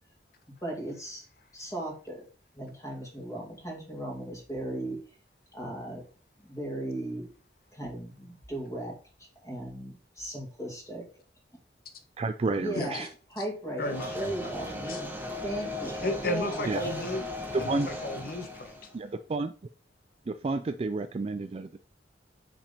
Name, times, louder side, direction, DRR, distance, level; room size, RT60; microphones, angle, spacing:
voice 1, 0.5-1.3 1.5-2.3 2.5-5.0 5.5-6.0 6.4-7.3 7.7-9.0 9.4-11.1 12.5-14.9 15.4-16.9, right 1 dB, 20° left, 2.4 m, -37 dB
voice 2, 12.2-13.1 16.7-16.8 17.5-17.9 18.9-19.5 20.3-21.8, right 3 dB, 35° right, 0.3 m, -30 dB
voice 3, 13.8-15.0 16.0-17.3 17.6-18.8, left 1 dB, 55° left, 1.2 m, -34 dB
sound 1, 13.8-19.0, left 2 dB, 10° right, 1.1 m, -37 dB
5.8 x 5.2 x 4.1 m
head